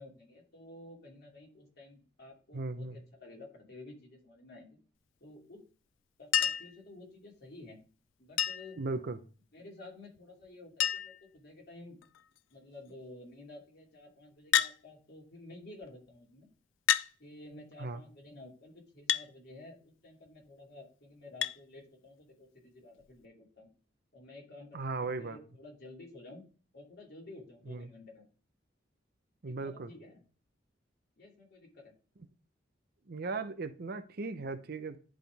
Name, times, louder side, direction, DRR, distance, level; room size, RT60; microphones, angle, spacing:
voice 1, 0.0-4.8 5.2-5.7 6.2-7.8 8.2-8.8 9.5-12.0 12.5-16.5 17.2-23.7 24.1-26.4 26.7-28.3 29.4-30.2 31.2-31.9, left 2 dB, 60° left, -1 dB, 2.6 m, -52 dB
voice 2, 2.5-3.0 8.8-9.2 17.8-18.0 24.7-25.4 27.7-27.9 29.4-29.9 33.1-35.0, right 3 dB, 55° right, 10 dB, 0.7 m, -37 dB
Chink clink, 6.3-6.8 8.4-8.8 10.2-10.3 10.5-10.6 10.8-11.3 12.0-12.4 14.5-14.8 15.8-15.9 16.9-17.1 19.1-19.3 21.4-21.6 23.0-23.1, left 10 dB, 90° left, 0.4 m, -29 dB
10.5 x 3.8 x 3.4 m, 0.38 s
head